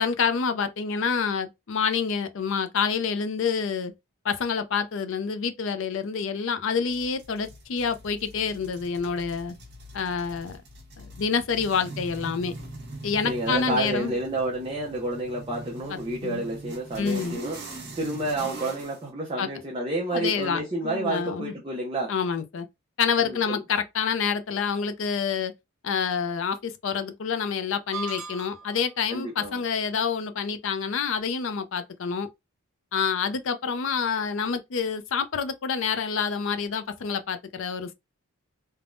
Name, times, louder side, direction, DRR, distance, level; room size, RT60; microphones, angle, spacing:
voice 1, 0.0-3.9 4.2-9.6 9.9-10.6 11.0-12.5 13.0-14.1 15.9-16.4 17.0-17.4 19.4-19.5 20.1-21.5 22.1-22.7 23.0-25.5 25.8-32.3 32.9-37.9, left 6 dB, 60° left, 0.4 m, -27 dB
sound 1, 6.9-19.0, right 2 dB, 50° right, 0.9 m, -42 dB
voice 2, 13.2-17.6 17.9-22.1 23.2-23.6 29.1-29.6, right 2 dB, 25° right, 0.6 m, -30 dB
sound 2, 27.9-28.9, right 4 dB, 80° right, 0.8 m, -37 dB
3.4 x 2.1 x 2.5 m
head